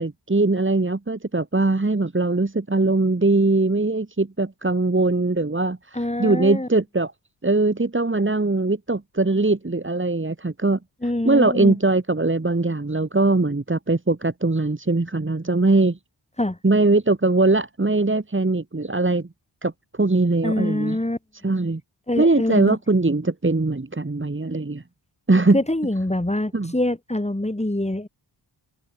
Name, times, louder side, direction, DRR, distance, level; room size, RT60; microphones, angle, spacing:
voice 1, 0.0-7.1 7.4-10.8 11.2-16.0 16.6-19.3 19.6-21.0 21.4-21.8 22.2-24.8 25.3-25.6 26.5-26.7, right 2 dB, 25° right, 2.6 m, -21 dB
voice 2, 5.9-6.7 11.0-11.8 16.4-16.6 20.4-21.2 22.1-22.8 25.5-28.1, left 1 dB, 15° left, 4.9 m, -25 dB
wide cardioid pair, 90°, 46 cm